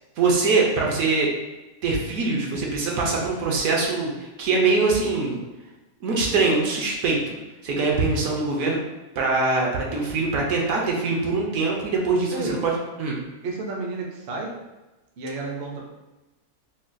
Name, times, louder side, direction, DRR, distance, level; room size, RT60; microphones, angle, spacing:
voice 1, 0.2-1.3 1.8-5.4 6.0-7.3 7.6-8.8 9.2-13.2, right 3 dB, 75° right, -2 dB, 1.1 m, -23 dB
voice 2, 13.4-14.5 15.2-15.8, right 2 dB, 60° right, 0 dB, 0.6 m, -31 dB
3.9 x 2.2 x 2.5 m, 1.1 s
omnidirectional pair, 1.5 m